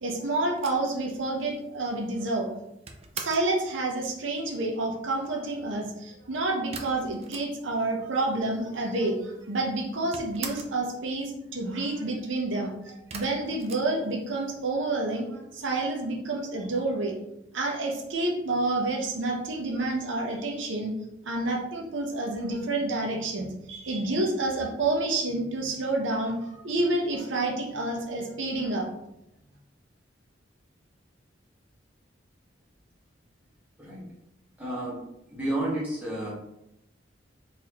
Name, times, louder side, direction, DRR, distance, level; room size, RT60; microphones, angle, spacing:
voice 1, 0.0-2.5 3.2-17.2 17.5-20.9 21.2-28.9, right 2 dB, 80° right, 0 dB, 0.7 m, -29 dB
sound 1, 0.6-3.6 6.7-7.9 8.2-8.3 8.4-9.2 9.5-10.9 13.1-14.6, right 5 dB, 35° right, 0.4 m, -42 dB
voice 2, 34.6-35.0 35.3-36.3, right 1 dB, 10° right, -7 dB, 1.1 m, -31 dB
4.1 x 2.6 x 2.9 m, 0.84 s
head